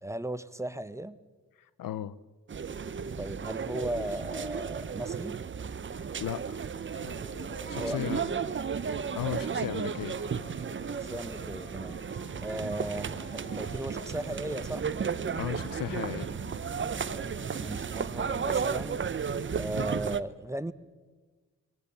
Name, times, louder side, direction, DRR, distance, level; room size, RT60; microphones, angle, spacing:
voice 1, 0.0-1.2 3.2-5.4 7.6-8.4 11.0-12.0 12.4-14.8 17.1-19.1 19.5-20.7, right 1 dB, 10° right, 14 dB, 0.9 m, -37 dB
voice 2, 1.8-2.1 6.2-6.6 6.9-7.2 7.7-8.2 9.0-10.2 15.4-16.4, left 11 dB, 75° left, 17 dB, 0.9 m, -36 dB
sound 1, 2.5-20.2, right 6 dB, 35° right, 0.8 m, -34 dB
Siren, 6.9-17.3, left 1 dB, 35° left, 7.4 m, -48 dB
22.5 x 17.5 x 7.0 m, 1.3 s
cardioid pair, 70°, 34 cm